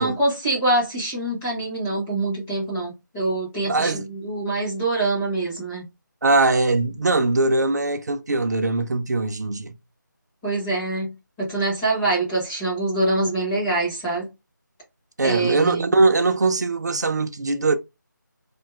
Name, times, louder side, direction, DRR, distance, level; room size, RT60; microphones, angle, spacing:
voice 1, 0.0-5.8 10.4-14.3 15.2-15.9, right 2 dB, 5° left, 0.5 m, -25 dB
voice 2, 3.6-4.1 6.2-9.7 15.2-17.8, right 3 dB, 60° right, 0.4 m, -21 dB
2.5 x 2.2 x 3.3 m
figure-of-eight pair, 165°, 11 cm